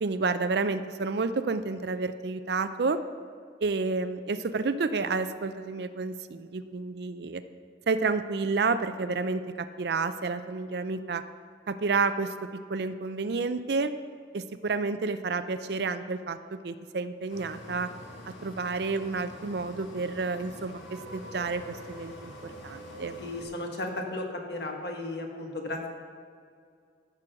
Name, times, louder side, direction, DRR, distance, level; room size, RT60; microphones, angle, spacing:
voice 1, 0.0-3.0 3.6-7.4 7.9-11.2 11.7-13.9 14.3-17.9 18.2-23.2, right 4 dB, 60° right, 12 dB, 0.5 m, -30 dB
sound 1, 17.3-23.4, equal, 90° left, 2.2 m, -45 dB
voice 2, 23.2-25.9, left 2 dB, 60° left, 2 dB, 1.5 m, -35 dB
13.5 x 6.2 x 5.8 m, 2.2 s
head